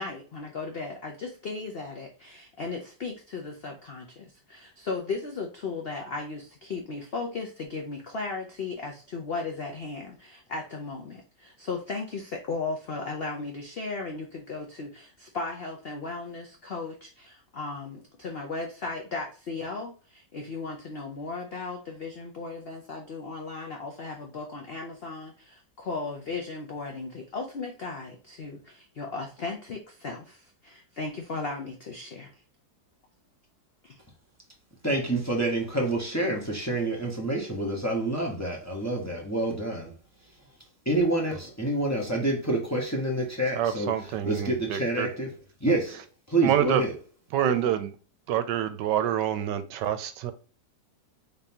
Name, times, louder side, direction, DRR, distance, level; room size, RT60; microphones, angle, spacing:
voice 1, 0.0-32.4 33.8-34.0, left 3 dB, 70° left, 0.5 m, -36 dB
voice 2, 34.8-39.9 40.8-43.9 44.2-45.3 45.6-46.0 46.3-46.9, right 2 dB, 15° left, 0.8 m, -27 dB
voice 3, 43.5-45.1 46.4-46.8 47.3-47.9 48.3-50.3, right 10 dB, 80° right, 1.2 m, -27 dB
3.8 x 3.7 x 2.8 m
omnidirectional pair, 1.9 m